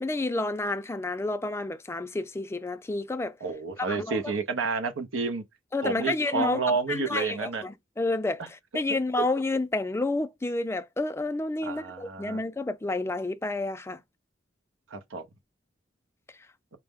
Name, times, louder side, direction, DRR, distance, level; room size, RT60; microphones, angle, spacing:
voice 1, 0.0-3.4 3.8-4.3 5.7-6.6 6.9-14.0, left 2 dB, 15° left, 0.4 m, -30 dB
voice 2, 3.4-5.4 5.8-7.6 11.6-12.4 14.9-15.3, right 4 dB, 85° right, 0.7 m, -30 dB
4.4 x 2.0 x 3.5 m
head